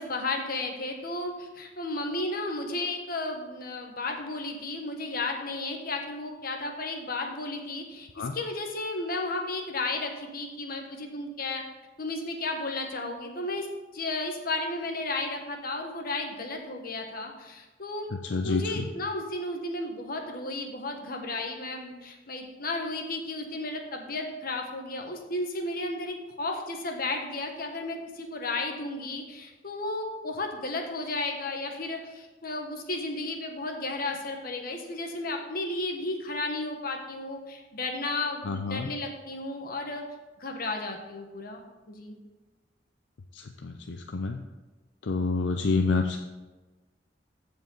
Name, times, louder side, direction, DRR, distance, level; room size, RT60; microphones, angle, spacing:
voice 1, 0.0-11.6 12.0-13.7 13.9-18.1 18.4-40.0 40.4-41.6 41.9-42.2, left 2 dB, 55° left, 3 dB, 1.4 m, -33 dB
voice 2, 18.2-18.8 38.4-38.9 43.3-44.4 45.0-46.2, left 4 dB, 75° left, 5 dB, 0.6 m, -28 dB
14.5 x 5.2 x 4.0 m, 1.2 s
head